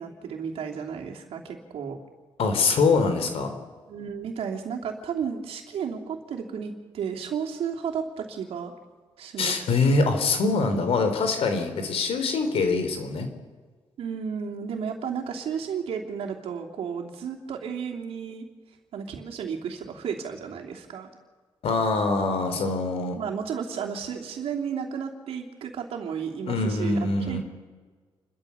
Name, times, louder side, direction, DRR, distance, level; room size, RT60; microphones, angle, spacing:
voice 1, 0.0-2.0 3.9-8.7 9.2-9.7 14.0-18.5 18.9-21.1 23.2-27.4, right 7 dB, 85° right, 1 dB, 3.0 m, -33 dB
voice 2, 2.4-3.6 9.4-13.3 21.6-23.2 26.5-27.4, left 3 dB, 75° left, 6 dB, 3.5 m, -24 dB
29.5 x 13.0 x 7.0 m, 1.4 s
cardioid pair, 95°, 10 cm